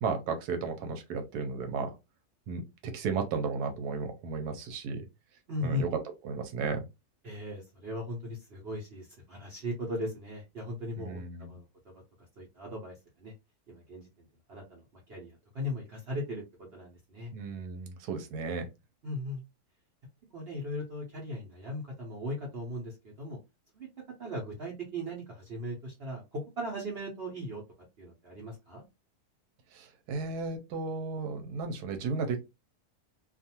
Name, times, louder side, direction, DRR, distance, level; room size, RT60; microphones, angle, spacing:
voice 1, 0.0-1.9 2.5-5.0 5.6-5.9 6.2-6.8 11.0-11.5 17.3-18.7 29.7-32.4, right 4 dB, 85° right, 6 dB, 1.1 m, -34 dB
voice 2, 5.5-5.8 7.2-11.6 12.4-12.9 13.2-13.3 13.7-14.1 14.5-14.8 15.1-16.4 16.7-17.3 19.0-19.4 20.3-23.4 23.7-23.9 24.2-27.6 28.0-28.8, left 1 dB, 50° right, -2 dB, 0.8 m, -38 dB
2.5 x 2.4 x 2.8 m, 0.24 s
omnidirectional pair, 1.6 m